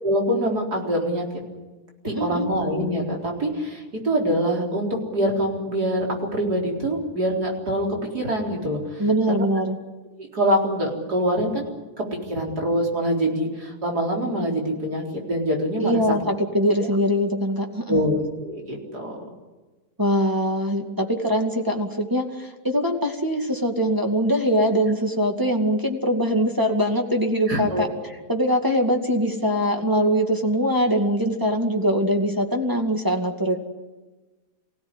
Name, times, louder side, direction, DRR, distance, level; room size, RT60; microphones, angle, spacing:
voice 1, 0.0-1.2 2.0-6.1 6.3-9.5 10.2-11.7 12.0-16.1 16.8-16.9 17.9-19.2 27.5-27.8, equal, 80° right, 0 dB, 4.7 m, -25 dB
voice 2, 2.0-2.5 9.0-9.8 15.8-18.0 20.0-27.9 28.3-33.6, equal, 15° right, 3 dB, 2.3 m, -22 dB
25.0 x 16.5 x 9.9 m, 1.2 s
omnidirectional pair, 1.7 m